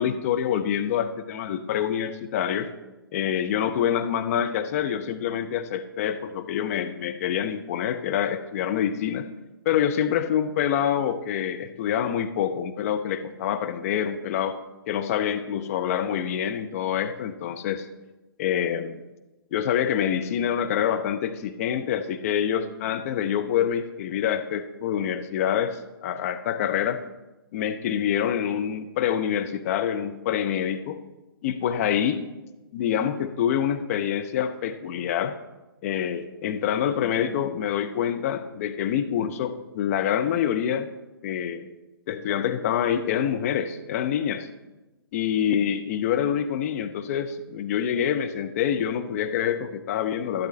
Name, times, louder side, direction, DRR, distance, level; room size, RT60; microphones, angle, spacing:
voice 1, 0.0-2.7 3.1-9.3 9.7-14.6 14.9-17.9 18.4-19.0 19.5-27.0 27.5-31.0 31.4-32.2 32.7-35.4 35.8-40.9 41.2-41.7 42.1-44.5 45.1-50.5, left 9 dB, 35° left, 8 dB, 0.6 m, -26 dB
11.5 x 11.5 x 3.2 m, 1.1 s
figure-of-eight pair, 125°, 13 cm